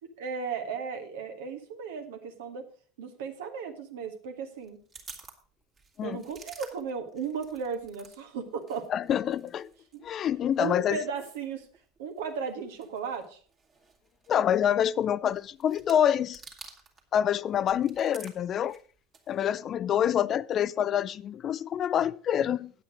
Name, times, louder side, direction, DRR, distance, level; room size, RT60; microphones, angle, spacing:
voice 1, 0.0-2.6 3.0-4.8 6.0-8.8 10.6-11.7 12.0-13.4 19.9-20.3, right 6 dB, 70° right, 1.5 m, -35 dB
sound 1, 4.6-8.2 8.5-17.1 17.4-19.5, right 4 dB, 35° right, 2.1 m, -52 dB
voice 2, 8.9-9.7 10.0-11.0 14.3-16.4 17.1-18.8 19.3-22.7, left 9 dB, 40° left, 0.4 m, -26 dB
9.2 x 8.1 x 5.0 m
figure-of-eight pair, 75°, 0 cm